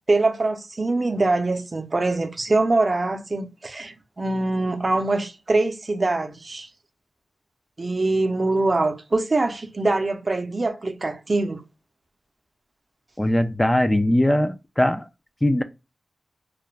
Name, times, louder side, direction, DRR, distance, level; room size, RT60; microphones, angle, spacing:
voice 1, 0.1-6.7 7.8-11.6, right 2 dB, 45° right, 0.5 m, -23 dB
voice 2, 13.2-15.1 15.4-15.6, left 1 dB, 15° left, 0.3 m, -20 dB
2.3 x 2.1 x 3.2 m
cardioid pair, 50°, 0 cm